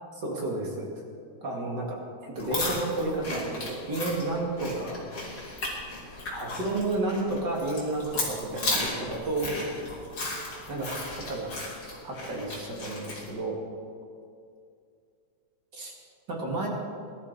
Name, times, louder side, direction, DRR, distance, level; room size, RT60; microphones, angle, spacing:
voice 1, 0.1-0.9 1.4-5.0 6.3-9.9 10.7-11.6 12.0-13.6 15.7-15.9 16.3-16.7, right 2 dB, 40° right, -1 dB, 2.4 m, -31 dB
sound 1, 2.4-13.3, left 2 dB, 35° left, 3.9 m, -35 dB
21.0 x 12.5 x 4.1 m, 2.3 s
omnidirectional pair, 3.4 m